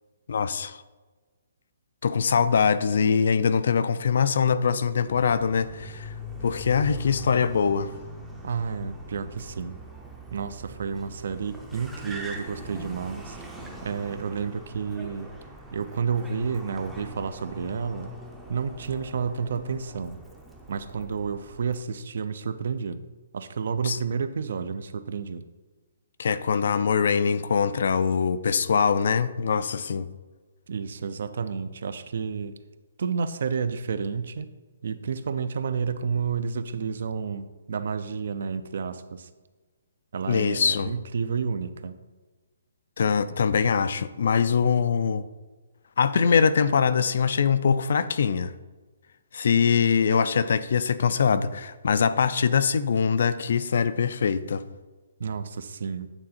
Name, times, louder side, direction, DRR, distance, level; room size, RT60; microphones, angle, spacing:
voice 1, 0.3-0.8 2.0-6.1 6.4-7.9 23.8-24.0 26.2-30.1 40.3-40.9 43.0-45.2 46.0-48.5 49.3-54.6, left 6 dB, 55° left, 14 dB, 0.4 m, -23 dB
Car, 5.1-21.8, equal, 5° right, 0.5 m, -42 dB
voice 2, 8.4-9.8 10.3-13.4 13.8-15.3 15.7-18.1 18.5-20.2 20.7-23.0 23.3-25.4 30.7-32.5 33.0-34.5 34.8-39.3 40.1-42.0 55.2-56.1, right 6 dB, 55° right, 12 dB, 0.4 m, -30 dB
8.9 x 3.7 x 4.3 m, 1.3 s
hypercardioid pair, 175°, 0 cm